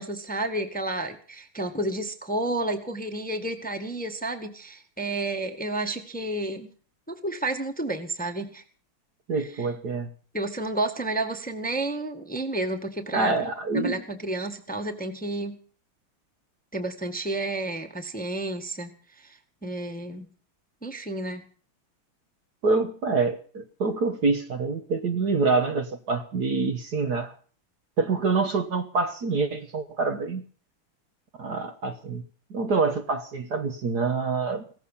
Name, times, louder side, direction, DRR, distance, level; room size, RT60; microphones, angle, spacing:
voice 1, 0.0-6.7 7.1-8.6 9.4-9.7 10.3-13.4 13.7-15.6 16.7-18.9 19.2-20.2 20.8-21.5, right 2 dB, 5° left, 6 dB, 1.5 m, -31 dB
voice 2, 9.3-10.1 13.1-14.0 22.6-27.3 28.0-30.4 31.4-32.2 32.5-34.6, right 4 dB, 50° right, 6 dB, 1.7 m, -26 dB
17.5 x 14.5 x 5.7 m, 0.42 s
omnidirectional pair, 2.4 m